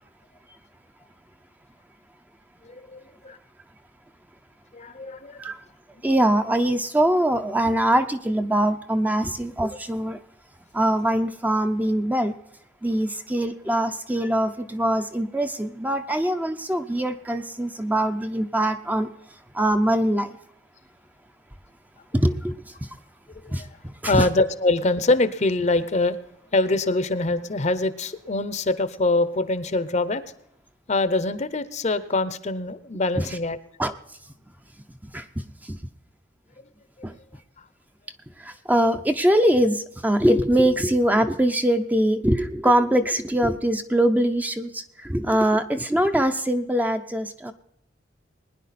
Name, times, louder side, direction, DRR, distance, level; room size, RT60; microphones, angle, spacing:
voice 1, 2.7-3.4 4.7-5.4 23.4-23.6 24.1-26.2 26.5-30.2 30.9-33.6, left 2 dB, 40° left, 14 dB, 0.7 m, -24 dB
voice 2, 6.0-10.2 10.7-12.3 12.8-19.1 19.5-20.4 22.1-23.0 23.5-24.3 33.2-33.4 33.8-33.9 35.0-35.8 37.0-37.1 38.4-47.5, right 1 dB, 10° right, 7 dB, 0.6 m, -23 dB
20.5 x 10.0 x 4.2 m, 0.76 s
head